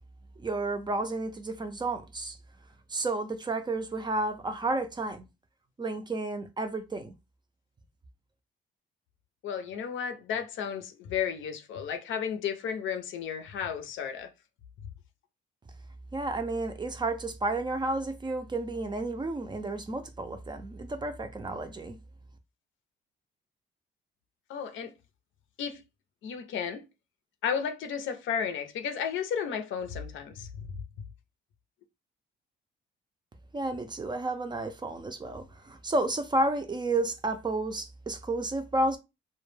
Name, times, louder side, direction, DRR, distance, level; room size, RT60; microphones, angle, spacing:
voice 1, 0.4-2.4 2.9-5.2 5.8-7.1 16.1-22.0 33.5-39.0, right 2 dB, 20° right, 0.4 m, -31 dB
voice 2, 9.4-14.3 24.5-24.9 25.6-25.8 26.2-26.8 27.4-30.7, left 7 dB, 75° left, 0.6 m, -33 dB
2.2 x 2.1 x 3.2 m
cardioid pair, 90°, 20 cm